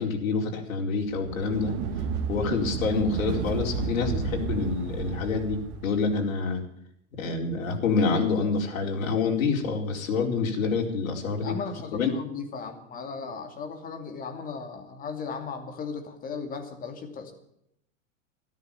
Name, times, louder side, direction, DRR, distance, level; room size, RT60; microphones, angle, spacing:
voice 1, 0.0-1.7 2.3-6.6 7.2-11.6 11.9-12.1, left 4 dB, 85° left, 1 dB, 4.6 m, -27 dB
sound 1, 1.1-5.9, right 6 dB, 40° right, 2.1 m, -31 dB
voice 2, 11.4-17.3, left 5 dB, 20° left, 5 dB, 2.5 m, -36 dB
13.5 x 13.0 x 7.0 m, 0.76 s
supercardioid pair, 150°, 40 cm